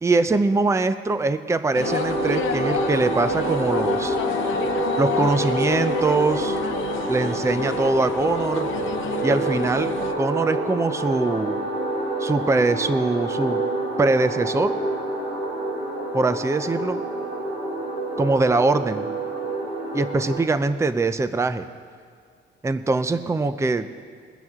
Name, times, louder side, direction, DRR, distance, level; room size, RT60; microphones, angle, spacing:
voice 1, 0.0-4.2 5.0-6.6 7.1-8.7 9.2-11.6 12.2-13.6 14.0-14.7 16.1-17.0 18.2-19.1 19.9-21.7 22.6-23.9, right 3 dB, 15° right, 11 dB, 0.5 m, -22 dB
sound 1, 1.7-10.1, left 9 dB, 80° left, 0.8 m, -31 dB
sound 2, 1.8-20.4, right 1 dB, 90° right, 3.9 m, -27 dB
21.5 x 9.1 x 3.7 m, 2.1 s
cardioid pair, 90°, 20 cm